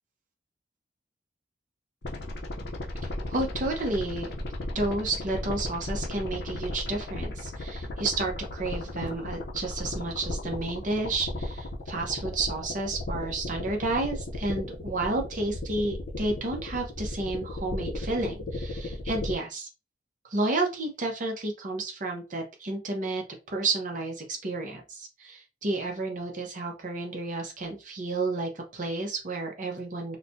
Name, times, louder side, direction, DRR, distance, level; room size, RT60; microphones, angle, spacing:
sound 1, 2.0-19.3, left 1 dB, 70° left, 0.7 m, -35 dB
voice 1, 3.3-4.3 4.7-19.7 20.3-30.2, right 2 dB, 50° right, 1 dB, 0.7 m, -31 dB
4.0 x 2.2 x 2.7 m, 0.28 s
head